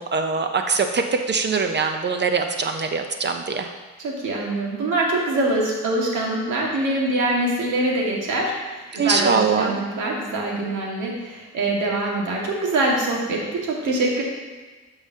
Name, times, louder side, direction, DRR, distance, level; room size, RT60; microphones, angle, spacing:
voice 1, 0.0-3.7 8.9-9.8, right 5 dB, 35° right, 5 dB, 0.7 m, -22 dB
voice 2, 4.0-14.2, right 2 dB, 80° right, -2 dB, 2.0 m, -24 dB
12.0 x 5.0 x 2.8 m, 1.3 s
cardioid pair, 90°, 30 cm